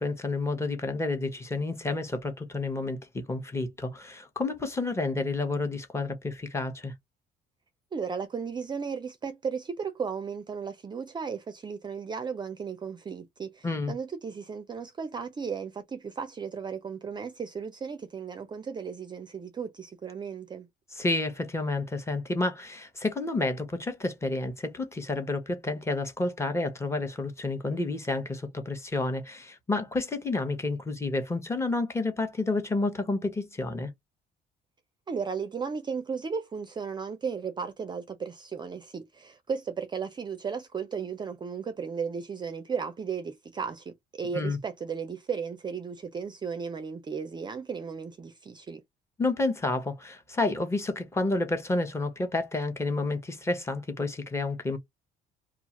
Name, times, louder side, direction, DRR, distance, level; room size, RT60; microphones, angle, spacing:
voice 1, 0.0-3.0 3.3-6.9 13.6-13.9 20.9-33.9 44.3-44.6 49.2-54.8, left 2 dB, 15° left, 0.8 m, -30 dB
voice 2, 7.9-20.7 35.1-48.8, right 6 dB, 25° right, 0.5 m, -35 dB
2.4 x 2.3 x 2.9 m
cardioid pair, 110°, 17 cm